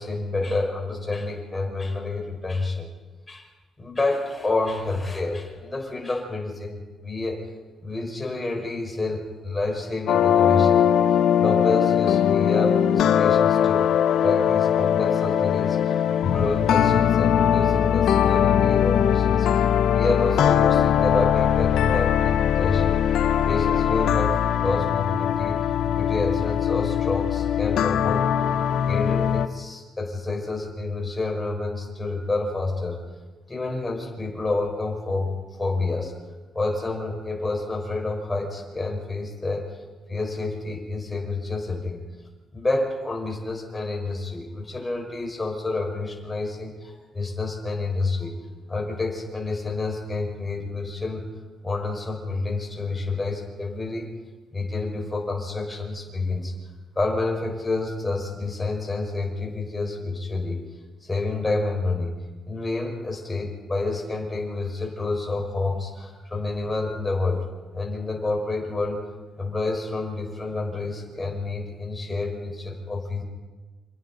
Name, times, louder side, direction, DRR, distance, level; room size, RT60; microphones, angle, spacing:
voice 1, 0.0-2.9 3.3-3.5 3.8-7.4 7.8-10.8 11.4-13.9 14.2-19.5 19.9-23.0 23.4-25.6 26.0-28.3 28.9-33.0 33.5-36.1 36.5-39.6 40.1-42.0 42.5-48.4 48.7-51.2 51.6-54.1 54.5-56.5 57.0-60.6 61.0-62.1 62.5-67.5 67.7-69.1 69.4-73.2, left 3 dB, 15° left, 0 dB, 4.2 m, -28 dB
sound 1, 10.1-29.5, left 9 dB, 75° left, 0.9 m, -21 dB
29.5 x 27.0 x 4.0 m, 1.3 s
cardioid pair, 180°, 0 cm